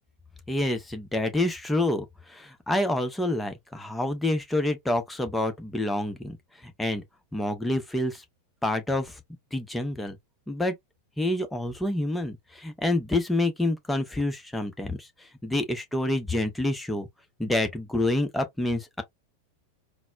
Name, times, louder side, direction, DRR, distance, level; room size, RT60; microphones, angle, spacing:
voice 1, 0.5-6.4 6.8-7.0 7.3-8.2 8.6-9.2 9.5-10.2 10.5-10.7 11.2-15.1 15.4-17.1 17.4-19.0, left 1 dB, 5° left, 0.7 m, -27 dB
4.0 x 2.1 x 2.4 m
figure-of-eight pair, 90°, 0 cm